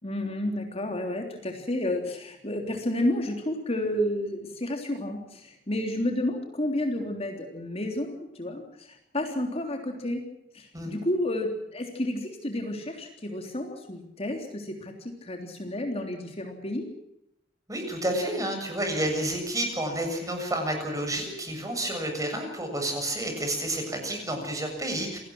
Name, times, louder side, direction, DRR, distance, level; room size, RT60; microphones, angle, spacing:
voice 1, 0.0-10.2 10.5-16.9, left 1 dB, 35° left, 3 dB, 3.4 m, -31 dB
voice 2, 17.7-25.2, right 1 dB, 20° right, 4 dB, 7.4 m, -30 dB
29.0 x 19.0 x 6.3 m, 0.83 s
head